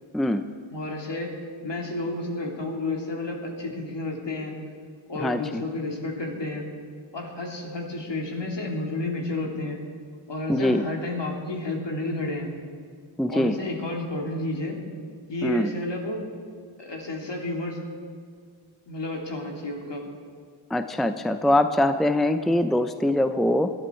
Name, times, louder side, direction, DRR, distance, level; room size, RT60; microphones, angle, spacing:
voice 1, 0.7-1.3 1.6-4.5 5.1-6.7 7.1-9.8 10.3-12.5 13.3-14.8 15.3-16.2 16.8-17.8 18.9-20.0, left 2 dB, 60° left, 0 dB, 3.1 m, -31 dB
voice 2, 5.2-5.6 10.5-10.8 13.2-13.6 15.4-15.7 20.7-23.7, left 1 dB, ahead, 9 dB, 0.6 m, -23 dB
20.5 x 12.5 x 4.5 m, 2.1 s
cardioid pair, 60°, 47 cm